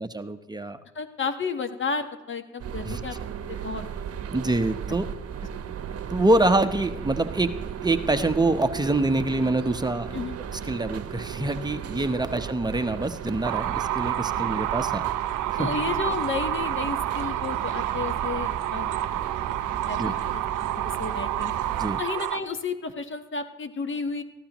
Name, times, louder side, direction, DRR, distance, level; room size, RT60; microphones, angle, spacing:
voice 1, 0.0-0.8 2.8-3.0 4.3-5.0 6.1-7.5 7.8-10.2 10.5-15.0 15.5-15.7 20.0-20.1 21.8-22.0, right 2 dB, 15° right, 8 dB, 0.9 m, -25 dB
voice 2, 0.9-3.1 3.5-3.8 10.1-10.3 15.6-18.9 19.9-20.4 20.8-21.5 22.0-24.2, left 5 dB, 40° left, 8 dB, 1.3 m, -32 dB
sound 1, 2.6-22.0, right 8 dB, 55° right, 0.9 m, -35 dB
sound 2, 13.4-22.4, right 13 dB, 80° right, 0.7 m, -29 dB
18.5 x 14.0 x 3.0 m, 1.1 s
cardioid pair, 90°, 30 cm